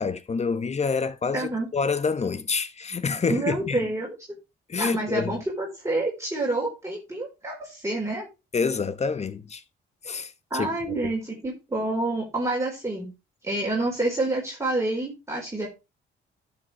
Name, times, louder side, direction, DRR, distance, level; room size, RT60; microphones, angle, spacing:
voice 1, 0.0-3.9 4.7-5.3 8.5-9.6 10.0-10.7 11.0-11.1, left 5 dB, 35° left, 1.1 m, -27 dB
voice 2, 1.3-1.7 3.3-4.1 4.8-8.3 10.5-13.1 13.4-15.7, right 2 dB, 15° right, 4.4 m, -28 dB
12.0 x 7.2 x 3.4 m
cardioid pair, 90°, 20 cm